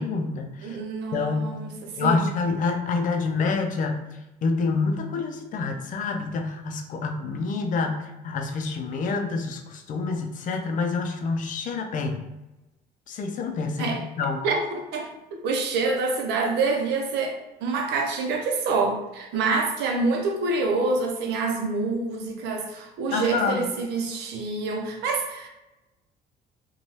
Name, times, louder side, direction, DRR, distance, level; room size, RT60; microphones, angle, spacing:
voice 1, 0.0-0.8 1.1-1.6 2.0-4.1 4.4-12.2 13.1-14.4 23.1-23.6, left 4 dB, 50° left, 4 dB, 0.5 m, -27 dB
voice 2, 0.6-2.3 13.8-14.0 14.4-15.1 15.4-17.3 17.6-25.5, right 3 dB, 80° right, 2 dB, 0.6 m, -26 dB
2.7 x 2.2 x 3.1 m, 0.99 s
cardioid pair, 110°, 17 cm